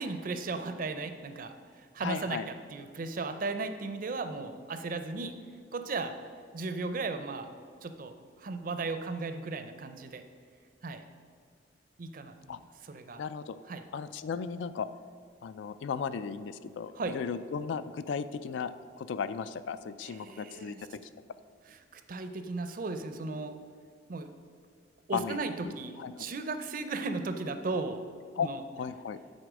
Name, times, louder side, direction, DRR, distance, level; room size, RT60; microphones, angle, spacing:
voice 1, 0.0-5.3 5.7-6.1 6.5-7.5 7.8-10.2 10.8-11.0 12.0-13.2 13.7-13.8 16.9-17.2 20.0-20.9 21.7-23.6 24.1-24.3 25.1-28.0 28.4-28.6, right 3 dB, 45° right, 8 dB, 0.5 m, -36 dB
voice 2, 2.0-2.5 12.5-12.6 13.2-13.6 13.9-14.9 15.4-20.8 25.1-26.1 28.4-28.5 28.8-29.2, left 6 dB, 70° left, 13 dB, 0.3 m, -35 dB
7.9 x 4.1 x 6.1 m, 2.1 s
head